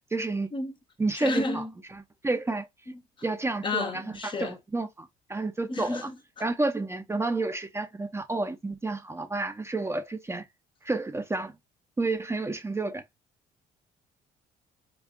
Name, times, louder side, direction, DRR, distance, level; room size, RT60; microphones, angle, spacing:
voice 1, 0.1-0.5 1.0-1.6 1.9-2.7 3.2-6.1 6.4-10.5 10.8-11.5 12.0-13.0, right 3 dB, 15° right, 0.5 m, -30 dB
voice 2, 1.1-1.7 2.9-3.0 3.6-4.5 5.7-6.4, left 2 dB, 30° left, 0.7 m, -31 dB
3.5 x 2.3 x 3.5 m
cardioid pair, 110°, 17 cm